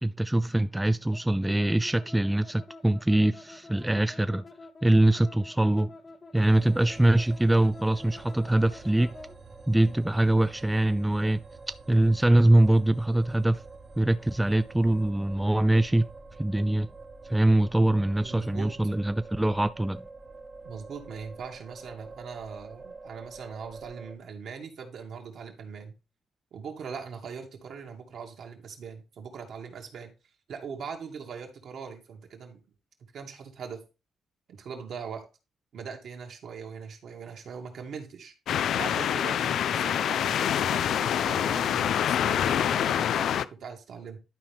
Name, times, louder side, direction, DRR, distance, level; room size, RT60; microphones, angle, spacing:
voice 1, 0.0-4.4 4.8-5.9 6.3-9.2 9.7-11.4 11.9-13.6 14.0-16.1 16.4-16.9 17.3-20.0, right 1 dB, 10° right, 0.3 m, -23 dB
sound 1, 1.1-9.4, left 3 dB, 30° left, 0.8 m, -48 dB
sound 2, 6.4-24.2, right 3 dB, 35° right, 1.1 m, -47 dB
voice 2, 18.2-18.8 20.6-25.9 26.5-30.1 30.5-32.6 33.1-33.8 34.5-35.2 35.7-38.3 38.7-44.2, right 6 dB, 65° right, 2.0 m, -41 dB
sound 3, 38.5-43.4, left 9 dB, 70° left, 0.4 m, -26 dB
11.5 x 4.4 x 3.5 m
cardioid pair, 90°, 0 cm